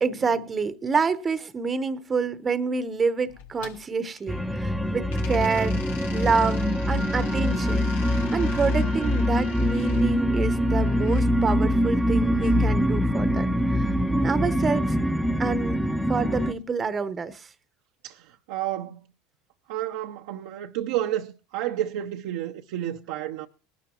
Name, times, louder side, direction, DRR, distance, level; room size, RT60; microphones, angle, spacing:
voice 1, 0.0-5.8 6.1-7.9 8.3-15.0 15.4-15.8 16.1-17.5, right 5 dB, 25° right, 0.9 m, -28 dB
sound 1, 3.3-4.7 5.1-11.3 12.3-13.5, left 7 dB, 80° left, 1.4 m, -44 dB
sound 2, 4.3-16.5, equal, ahead, 0.8 m, -24 dB
voice 2, 18.0-19.1 19.7-23.5, right 12 dB, 70° right, 0.7 m, -31 dB
20.0 x 12.0 x 3.0 m
hypercardioid pair, 85°, 0 cm